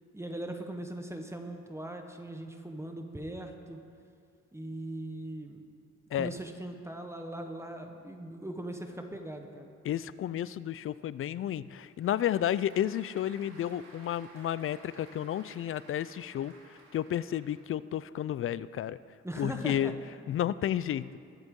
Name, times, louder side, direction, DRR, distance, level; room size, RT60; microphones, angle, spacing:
voice 1, 0.1-3.8 4.5-5.6 6.1-9.7 19.2-19.9, right 1 dB, 10° right, 4 dB, 1.1 m, -40 dB
voice 2, 9.8-19.0 19.4-19.9 20.3-21.1, left 11 dB, 45° left, 17 dB, 0.4 m, -32 dB
Applause / Crowd, 11.5-17.7, right 2 dB, 85° right, 2.9 m, -56 dB
21.0 x 7.9 x 3.7 m, 2.3 s
cardioid pair, 90°, 30 cm